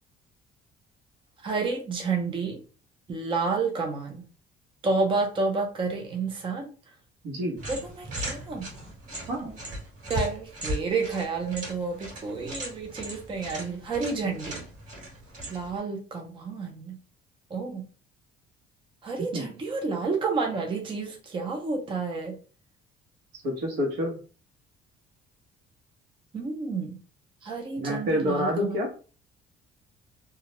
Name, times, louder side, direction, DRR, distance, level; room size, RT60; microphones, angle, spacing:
voice 1, 1.4-2.6 3.1-4.2 4.8-6.7 7.7-8.7 10.1-14.7 15.5-17.0 17.5-17.9 19.0-22.4 26.3-27.0 27.4-28.8, right 4 dB, 30° right, 2 dB, 0.6 m, -30 dB
voice 2, 7.2-7.6 9.3-9.6 19.3-19.5 23.4-24.2 27.8-28.9, equal, 75° right, 1 dB, 0.9 m, -28 dB
sound 1, 7.6-15.8, equal, 45° right, 1.3 m, -38 dB
2.3 x 2.0 x 2.9 m, 0.37 s
cardioid pair, 110°, 17 cm